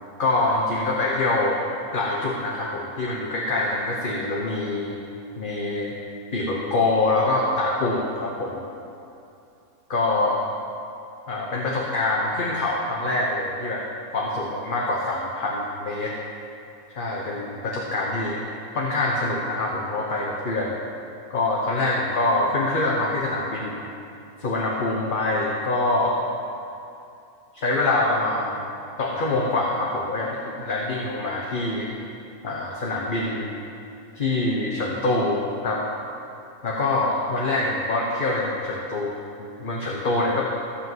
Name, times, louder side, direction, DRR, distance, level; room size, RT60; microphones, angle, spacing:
voice 1, 0.2-1.6 1.9-4.9 5.4-5.9 6.3-8.6 9.9-10.4 11.3-13.8 14.1-16.1 16.9-18.4 18.7-20.8 21.3-23.8 24.4-26.1 27.5-28.7 29.0-31.9 32.4-33.5 34.1-35.8 36.6-39.1 39.4-40.5, left 2 dB, 40° left, -3 dB, 1.1 m, -25 dB
15.0 x 5.7 x 7.6 m, 2.6 s
omnidirectional pair, 1.5 m